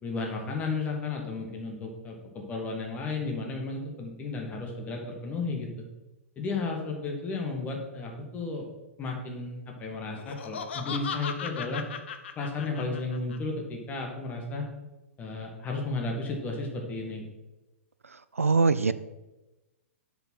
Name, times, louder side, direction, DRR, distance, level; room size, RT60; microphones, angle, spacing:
voice 1, 0.0-5.7 6.3-8.7 9.0-11.8 12.4-14.7 15.2-17.3, left 3 dB, 20° left, 1 dB, 1.6 m, -33 dB
Laughter, 10.1-13.4, left 6 dB, 55° left, 0.7 m, -37 dB
voice 2, 18.4-18.9, right 4 dB, 80° right, 14 dB, 0.4 m, -22 dB
7.7 x 5.0 x 5.5 m, 1.1 s
figure-of-eight pair, 110°, 8 cm